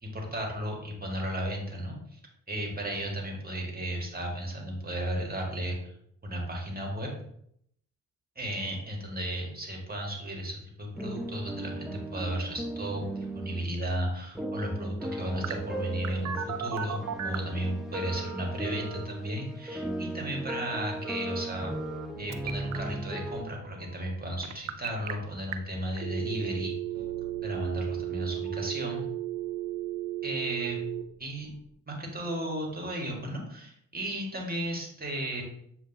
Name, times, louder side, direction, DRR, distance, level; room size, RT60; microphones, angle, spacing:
voice 1, 0.0-2.2 2.5-5.9 6.2-7.1 8.4-21.7 22.2-26.8 27.4-29.1 30.2-30.8 31.2-31.5 31.9-35.4, equal, 25° right, 0 dB, 1.6 m, -34 dB
sound 1, 10.9-13.7 14.3-23.4, right 1 dB, ahead, 0.6 m, -37 dB
Telephone, 15.4-17.5 18.0-19.1 21.0-22.1 22.3-22.8 24.4-25.1 25.5-25.6 26.0-31.0, right 12 dB, 45° right, 0.5 m, -35 dB
sound 2, 22.1-31.7, right 3 dB, 85° right, 0.8 m, -53 dB
7.3 x 2.7 x 2.7 m, 0.72 s
hypercardioid pair, 45°, 38 cm